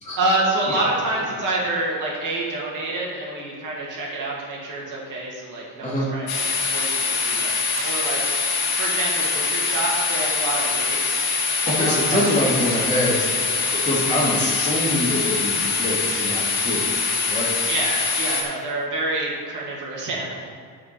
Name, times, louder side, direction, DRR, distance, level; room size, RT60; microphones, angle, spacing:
voice 1, 0.2-8.2 8.8-11.1 11.6-12.6 13.0-13.8 17.7-20.5, right 2 dB, 50° right, -4 dB, 2.2 m, -27 dB
sound 1, 6.3-18.4, left 4 dB, 70° left, 1.7 m, -24 dB
voice 2, 11.7-16.9 17.3-17.5, left 1 dB, 20° left, -7 dB, 2.5 m, -24 dB
13.5 x 4.9 x 4.4 m, 2.2 s
cardioid pair, 170°, 39 cm